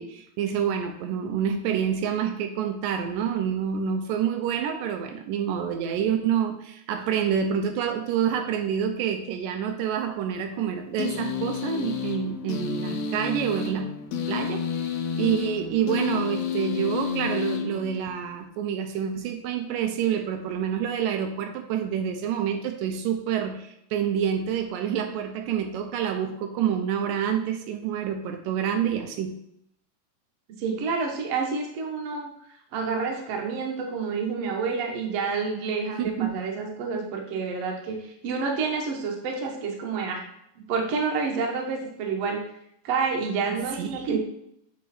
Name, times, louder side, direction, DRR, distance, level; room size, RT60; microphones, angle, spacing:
voice 1, 0.0-13.9 14.3-29.4 36.0-36.4 43.5-44.2, right 8 dB, 85° right, 5 dB, 2.3 m, -27 dB
sound 1, 11.0-18.4, left 6 dB, 75° left, 1.5 m, -30 dB
voice 2, 30.6-32.3 32.7-40.2 40.7-42.4 42.8-44.2, right 5 dB, 60° right, 1 dB, 2.0 m, -28 dB
8.4 x 4.4 x 4.3 m, 0.75 s
omnidirectional pair, 3.8 m